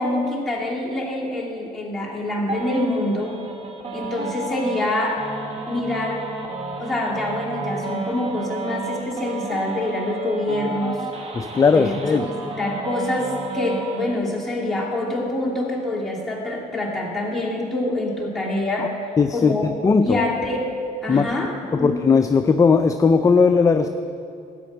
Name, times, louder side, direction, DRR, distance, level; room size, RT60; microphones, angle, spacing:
voice 1, 0.0-3.4 3.9-5.2 5.7-6.2 6.8-11.0 11.7-12.2 12.6-18.9 19.3-20.7 21.0-21.5 21.8-21.9, left 1 dB, ahead, -6 dB, 2.6 m, -25 dB
sound 1, 2.5-14.1, right 3 dB, 35° right, 1.3 m, -32 dB
voice 2, 11.3-12.3 18.8-18.9 19.2-20.2 21.1-21.3 21.7-23.9, left 5 dB, 20° left, 9 dB, 0.4 m, -18 dB
13.0 x 5.2 x 8.7 m, 2.5 s
cardioid pair, 110°, 17 cm